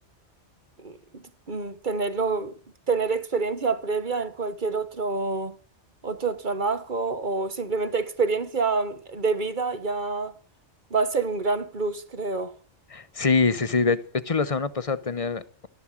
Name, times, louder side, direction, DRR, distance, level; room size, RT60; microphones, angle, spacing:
voice 1, 0.8-2.5 2.9-5.6 6.0-10.3 10.9-12.5, right 4 dB, 45° right, 1.4 m, -27 dB
voice 2, 12.9-15.7, left 4 dB, 35° left, 0.9 m, -25 dB
13.5 x 11.0 x 7.5 m
omnidirectional pair, 1.2 m